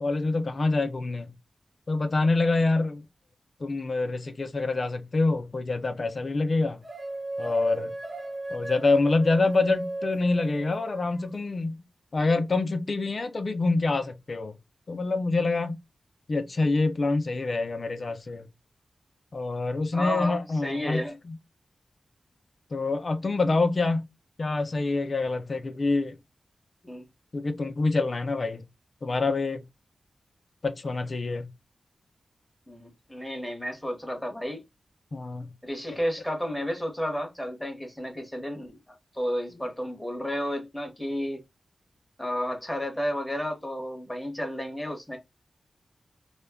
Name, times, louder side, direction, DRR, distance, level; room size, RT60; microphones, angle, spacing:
voice 1, 0.0-1.3 1.9-3.0 3.6-6.8 7.4-7.9 8.5-11.8 12.1-14.6 14.9-15.8 16.3-18.5 19.3-21.4 22.7-24.1 24.4-26.2 27.3-28.7 29.0-29.6 30.6-31.5 35.1-35.5, left 3 dB, 45° left, 0.4 m, -26 dB
sound 1, 6.8-11.3, right 2 dB, 25° right, 0.7 m, -36 dB
voice 2, 19.9-21.2 26.8-27.0 32.7-34.6 35.6-38.8 39.1-41.4 42.2-45.2, equal, 5° left, 0.9 m, -32 dB
2.1 x 2.1 x 3.4 m
wide cardioid pair, 115°, 0 cm